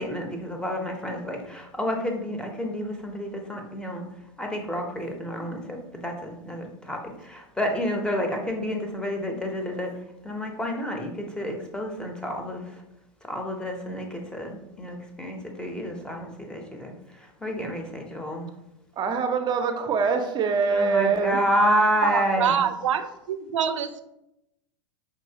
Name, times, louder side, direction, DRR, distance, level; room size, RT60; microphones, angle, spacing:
voice 1, 0.0-4.0 4.4-9.9 10.2-12.8 13.2-18.5 20.7-22.6, equal, 5° left, 2 dB, 0.8 m, -29 dB
voice 2, 19.0-21.4, right 5 dB, 30° right, 6 dB, 0.6 m, -24 dB
voice 3, 22.0-24.0, right 8 dB, 90° right, 10 dB, 0.4 m, -25 dB
5.0 x 3.0 x 2.8 m, 0.86 s
hypercardioid pair, 100°, 15 cm